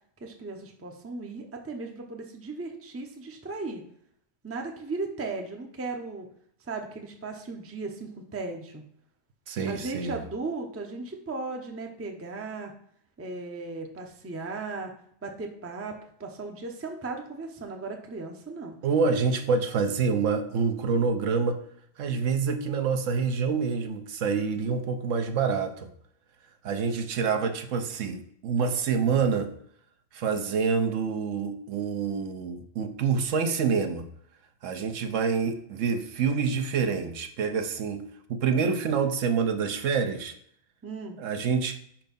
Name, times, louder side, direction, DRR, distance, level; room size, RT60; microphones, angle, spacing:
voice 1, 0.2-3.8 4.4-6.3 6.6-8.8 9.7-12.7 13.2-14.9 15.2-18.8 40.8-41.2, right 3 dB, 15° right, 3 dB, 0.6 m, -36 dB
voice 2, 9.5-10.1 18.8-21.6 22.0-25.9 26.6-29.5 30.1-34.0 34.6-40.3 41.2-41.8, right 5 dB, 70° right, 7 dB, 1.0 m, -27 dB
5.2 x 4.5 x 5.3 m, 0.66 s
omnidirectional pair, 1.4 m